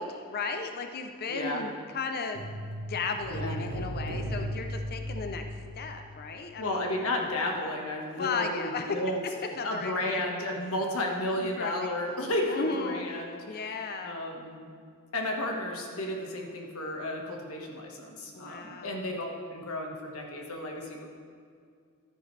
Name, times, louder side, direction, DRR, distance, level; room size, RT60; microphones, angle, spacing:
voice 1, 0.0-2.4 2.9-5.4 5.8-6.9 8.2-9.0 9.5-10.2 11.6-11.7 12.5-13.1 13.5-14.2 18.3-19.0, left 4 dB, 45° left, 5 dB, 0.5 m, -35 dB
voice 2, 1.3-1.6 3.3-3.6 6.6-14.7 15.1-21.1, left 1 dB, 65° left, 1 dB, 1.5 m, -33 dB
sound 1, 2.3-6.8 7.1-7.2, equal, 85° right, 1.4 m, -37 dB
12.5 x 10.0 x 3.3 m, 2.2 s
head